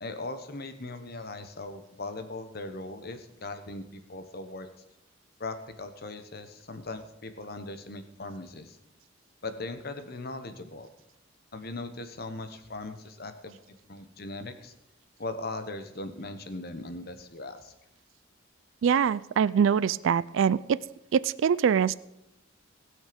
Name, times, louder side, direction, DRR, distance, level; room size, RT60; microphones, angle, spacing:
voice 1, 0.0-4.7 5.4-8.8 9.4-10.9 11.5-14.7 15.2-17.7, left 2 dB, 45° left, 9 dB, 1.1 m, -39 dB
voice 2, 18.8-20.8 21.1-21.9, right 7 dB, 65° right, 18 dB, 0.3 m, -24 dB
19.0 x 6.5 x 5.2 m, 0.84 s
head